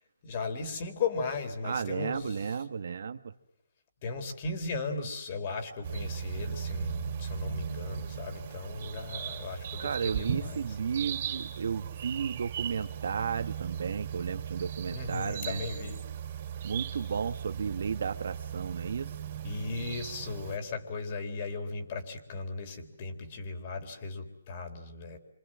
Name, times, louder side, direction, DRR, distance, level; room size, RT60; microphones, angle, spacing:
voice 1, 0.2-2.6 4.0-10.8 14.9-16.0 19.4-25.2, left 4 dB, 35° left, 6 dB, 4.0 m, -36 dB
voice 2, 1.6-3.3 9.8-15.6 16.6-19.1, right 6 dB, 65° right, 10 dB, 1.6 m, -33 dB
sound 1, 5.8-20.6, right 8 dB, 40° right, 4.0 m, -38 dB
27.5 x 26.5 x 7.5 m, 0.73 s
hypercardioid pair, 155°, 0 cm